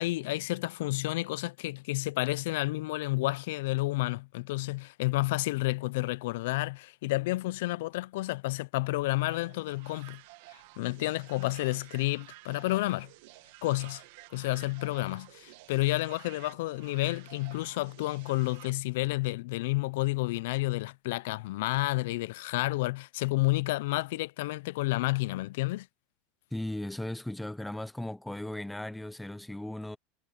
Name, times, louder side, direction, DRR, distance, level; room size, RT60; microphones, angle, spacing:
voice 1, 0.0-10.2 10.5-13.1 13.6-14.0 14.3-25.9, left 20 dB, 75° left, 0.3 m, -30 dB
sound 1, 9.1-18.7, right 20 dB, 65° right, 1.3 m, -52 dB
voice 2, 26.5-30.0, left 1 dB, 5° left, 0.5 m, -37 dB
supercardioid pair, 160°, 0 cm